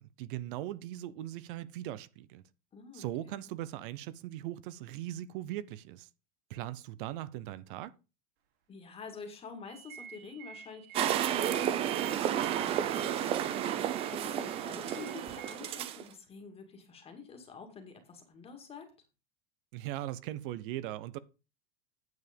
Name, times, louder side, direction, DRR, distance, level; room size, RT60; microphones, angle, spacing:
voice 1, 0.2-2.4 2.9-6.1 6.5-7.9 19.7-21.2, right 14 dB, 50° right, 0.7 m, -39 dB
voice 2, 2.7-3.4 8.7-13.8 14.1-18.9, left 5 dB, 15° left, 2.0 m, -48 dB
sound 1, 9.6-15.5, right 8 dB, 65° right, 2.8 m, -52 dB
sound 2, 10.9-16.0, right 10 dB, 15° right, 0.4 m, -31 dB
9.6 x 7.1 x 5.1 m
supercardioid pair, 170°, 34 cm